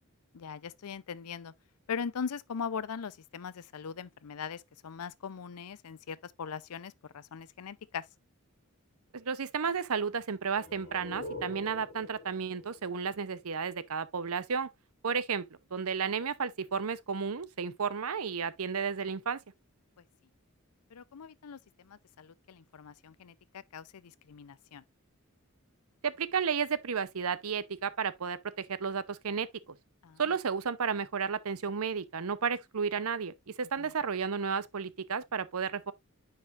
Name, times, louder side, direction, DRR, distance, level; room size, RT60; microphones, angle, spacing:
voice 1, 0.3-1.5 1.9-8.1 20.9-24.8 30.0-30.2 33.8-33.9, left 6 dB, 90° left, 0.5 m, -40 dB
voice 2, 9.1-14.7 15.0-15.5 15.7-19.4 26.0-29.5 30.2-35.9, right 6 dB, 80° right, 0.7 m, -32 dB
sound 1, 10.5-14.0, left 1 dB, 40° left, 4.5 m, -46 dB
9.5 x 5.0 x 2.4 m
head